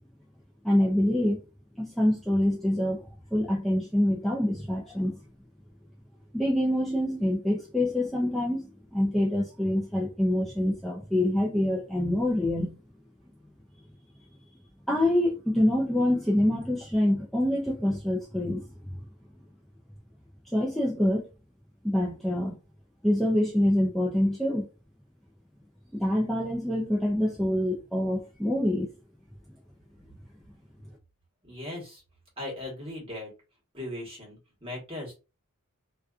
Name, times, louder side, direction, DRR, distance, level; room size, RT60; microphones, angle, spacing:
voice 1, 0.6-1.4 1.8-5.2 6.3-12.8 14.9-18.7 20.5-21.3 21.8-22.6 23.0-24.7 25.9-28.9, left 1 dB, ahead, 0.3 m, -26 dB
voice 2, 31.4-32.0 32.4-33.3 33.7-35.1, left 1 dB, 25° right, 1.2 m, -38 dB
2.5 x 2.3 x 2.3 m
head